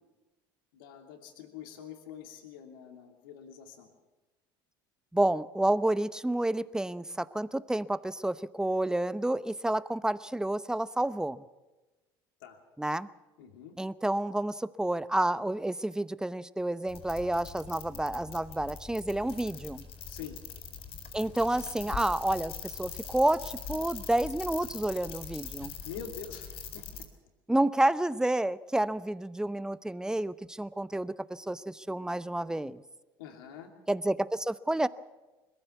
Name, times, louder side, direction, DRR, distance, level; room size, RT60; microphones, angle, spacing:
voice 1, 0.7-3.9 12.4-12.6 13.4-13.7 20.1-20.4 25.8-26.8 33.2-33.7, left 8 dB, 85° left, 5 dB, 2.7 m, -45 dB
voice 2, 5.1-11.4 12.8-13.1 13.8-19.8 21.1-25.7 27.5-32.8 33.9-34.9, right 1 dB, 5° right, 16 dB, 0.8 m, -30 dB
sound 1, 16.9-27.0, left 7 dB, 60° left, 4.4 m, -42 dB
21.5 x 15.0 x 8.2 m, 1.1 s
hypercardioid pair, 75°, 11 cm